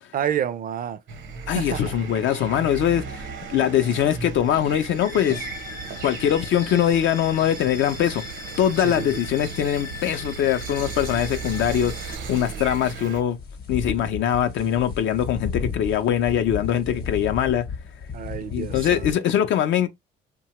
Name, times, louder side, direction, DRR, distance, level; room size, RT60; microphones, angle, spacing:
voice 1, 0.1-1.0 1.5-1.9 8.8-9.2 18.1-19.1, right 9 dB, 45° right, 0.4 m, -29 dB
sound 1, 1.1-13.2, right 5 dB, 75° right, 0.8 m, -36 dB
voice 2, 1.5-5.5 6.0-8.2 8.6-13.4 13.7-17.7 18.5-19.9, left 10 dB, 75° left, 0.4 m, -22 dB
sound 2, 4.9-12.1, left 6 dB, 15° left, 0.4 m, -40 dB
sound 3, 11.3-19.1, left 5 dB, 55° left, 0.8 m, -34 dB
2.7 x 2.2 x 2.9 m
cardioid pair, 90°, 20 cm